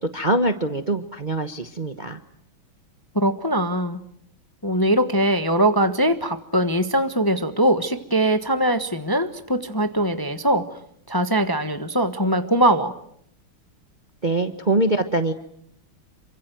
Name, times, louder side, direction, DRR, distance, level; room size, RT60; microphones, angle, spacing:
voice 1, 0.0-2.2 14.2-15.3, right 2 dB, 30° right, 8 dB, 1.0 m, -23 dB
voice 2, 3.1-4.0 4.6-10.6 11.1-12.9, right 1 dB, 15° left, 9 dB, 1.1 m, -21 dB
27.5 x 24.5 x 7.7 m, 0.70 s
omnidirectional pair, 2.2 m